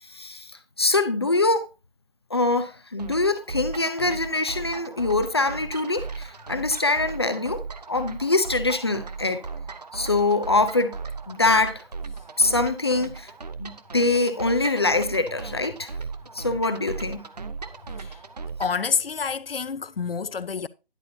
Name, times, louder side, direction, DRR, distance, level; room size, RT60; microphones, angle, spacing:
voice 1, 0.1-0.5 0.8-1.7 2.3-7.6 7.9-9.4 9.9-11.0 11.3-11.8 12.4-13.3 13.6-15.9 16.3-17.2, left 3 dB, 25° left, 0.6 m, -24 dB
sound 1, 3.0-18.8, right 4 dB, 40° right, 0.7 m, -37 dB
voice 2, 18.6-20.7, left 6 dB, 70° left, 0.7 m, -28 dB
10.5 x 8.1 x 2.7 m
figure-of-eight pair, 160°, 30 cm